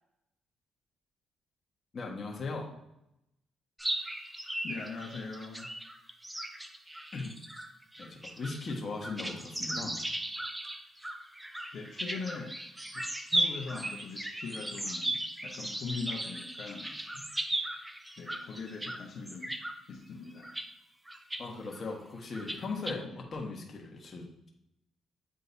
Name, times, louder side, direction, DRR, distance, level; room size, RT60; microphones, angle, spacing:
voice 1, 1.9-2.7 7.1-7.3 8.0-10.0 21.4-24.5, left 3 dB, 45° left, 0 dB, 1.4 m, -38 dB
sound 1, 3.8-19.0 19.3-19.7 20.3-20.7 21.1-21.4 21.7-21.8 22.3-22.9, right 1 dB, 10° right, 0.6 m, -37 dB
voice 2, 4.6-5.7 11.7-12.5 13.3-16.9 18.2-19.5 19.9-20.5 23.0-23.2, left 4 dB, 65° left, -2 dB, 0.9 m, -41 dB
9.3 x 3.8 x 2.7 m, 0.85 s
cardioid pair, 90°, 0 cm